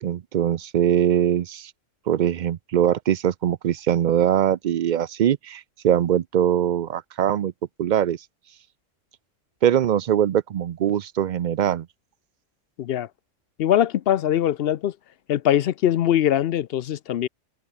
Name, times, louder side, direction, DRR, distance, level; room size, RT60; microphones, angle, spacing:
voice 1, 0.0-1.7 2.1-7.5 7.8-8.2 9.6-11.9, right 10 dB, 65° right, 0.4 m, -22 dB
voice 2, 12.8-13.1 13.6-14.9 15.3-17.3, left 11 dB, 60° left, 0.7 m, -22 dB
omnidirectional pair, 1.3 m